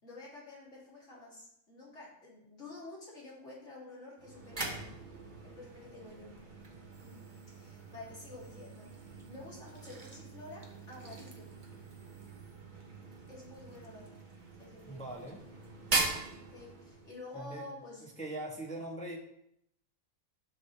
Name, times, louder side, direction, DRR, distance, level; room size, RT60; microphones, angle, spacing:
voice 1, 0.0-4.8 5.4-6.3 7.0-7.2 7.5-11.5 13.3-14.1 14.6-15.1 16.5-18.1, left 2 dB, 55° left, -6 dB, 3.4 m, -49 dB
sound 1, 4.2-17.2, right 3 dB, 35° right, 1.3 m, -41 dB
voice 2, 14.9-15.4 17.3-17.6 18.0-19.2, right 1 dB, 5° left, 0 dB, 1.1 m, -41 dB
11.5 x 6.3 x 3.4 m, 0.75 s
omnidirectional pair, 1.4 m